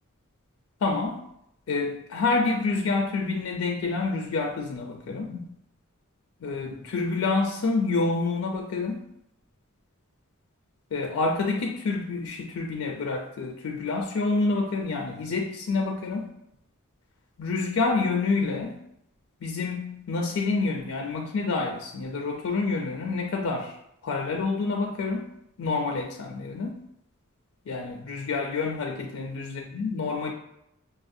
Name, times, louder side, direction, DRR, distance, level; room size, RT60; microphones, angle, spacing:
voice 1, 0.8-1.2 1.7-5.5 6.4-9.0 10.9-16.3 17.4-18.8 19.4-23.7 24.0-25.2 25.6-26.7 27.7-30.3, left 3 dB, 80° left, 1 dB, 0.4 m, -28 dB
5.5 x 2.4 x 2.6 m, 0.79 s
head